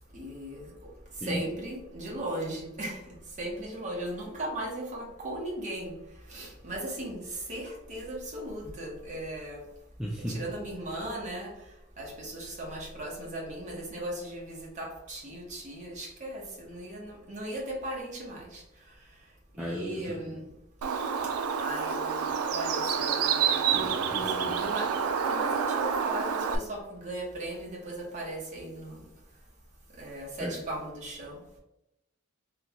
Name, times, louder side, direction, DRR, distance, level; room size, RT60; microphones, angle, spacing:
voice 1, 0.1-0.7 1.2-6.0 6.3-9.6 10.3-11.5 12.0-18.6 19.6-20.5 21.6-23.9 24.2-29.0 30.0-31.4, right 1 dB, 35° right, -2 dB, 0.9 m, -37 dB
voice 2, 10.0-10.5 19.6-20.4 23.7-24.6 30.4-30.6, equal, 5° right, -4 dB, 0.3 m, -35 dB
Bird, 20.8-26.6, right 6 dB, 80° right, 0.4 m, -28 dB
3.8 x 2.3 x 2.9 m, 0.89 s
head